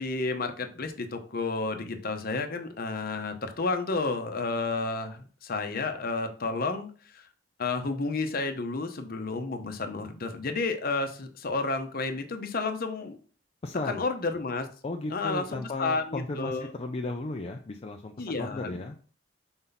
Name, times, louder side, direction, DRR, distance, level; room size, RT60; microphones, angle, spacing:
voice 1, 0.0-6.9 7.1-7.3 7.6-13.2 13.8-14.7 15.1-16.7 18.2-18.8, left 3 dB, 50° left, 7 dB, 0.8 m, -31 dB
voice 2, 13.6-14.0 14.8-18.9, left 2 dB, 30° left, 3 dB, 0.4 m, -35 dB
5.6 x 4.3 x 4.0 m, 0.42 s
head